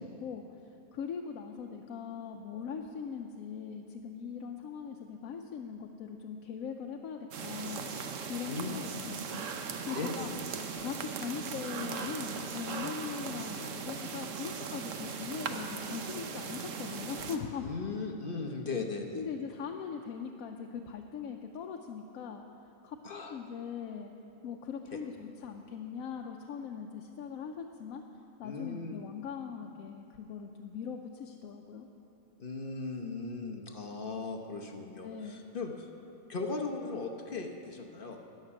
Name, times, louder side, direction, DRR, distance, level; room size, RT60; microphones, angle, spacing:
voice 1, 0.0-9.5 9.9-10.3 10.8-17.7 19.1-22.4 22.8-24.1 24.4-28.0 28.4-31.9 35.0-35.4, left 6 dB, 80° left, 3 dB, 1.1 m, -41 dB
sound 1, 7.3-17.4, right 5 dB, 65° right, 1.1 m, -39 dB
voice 2, 8.5-8.8 9.9-10.4 17.6-19.3 23.0-23.4 24.9-25.0 28.4-29.0 32.4-35.9 36.3-38.2, left 3 dB, 45° left, 3 dB, 1.0 m, -38 dB
13.0 x 6.6 x 9.8 m, 2.9 s
omnidirectional pair, 1.5 m